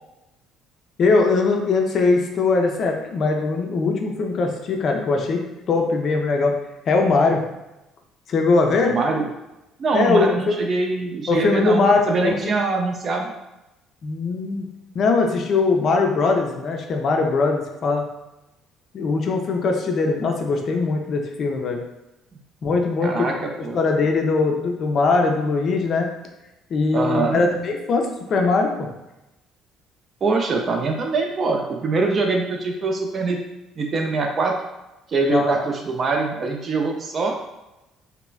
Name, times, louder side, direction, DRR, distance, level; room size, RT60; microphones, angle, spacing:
voice 1, 1.0-5.4 5.7-6.5 6.9-7.4 8.3-8.9 9.9-10.6 11.3-12.5 14.0-14.7 14.9-18.0 18.9-21.8 22.6-26.1 26.7-28.9 35.3-35.6, left 3 dB, 50° left, 2 dB, 0.4 m, -21 dB
voice 2, 8.9-9.3 9.8-13.3 23.0-23.8 26.9-27.4 30.2-33.4 33.8-34.6 35.1-37.4, right 3 dB, 45° right, 2 dB, 0.4 m, -23 dB
3.0 x 2.0 x 2.3 m, 0.96 s
hypercardioid pair, 55°, 0 cm